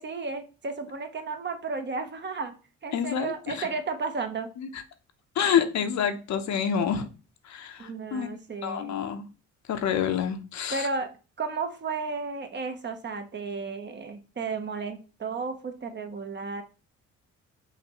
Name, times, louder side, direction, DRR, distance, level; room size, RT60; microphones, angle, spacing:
voice 1, 0.0-2.5 2.8-4.5 7.8-9.0 10.7-11.1 11.4-16.6, right 4 dB, 35° right, 0.8 m, -33 dB
voice 2, 2.9-3.3 4.6-4.7 5.4-7.1 7.5-8.3 8.6-9.2 9.7-10.9, left 8 dB, 65° left, 0.8 m, -27 dB
5.7 x 2.6 x 3.0 m
cardioid pair, 90°, 30 cm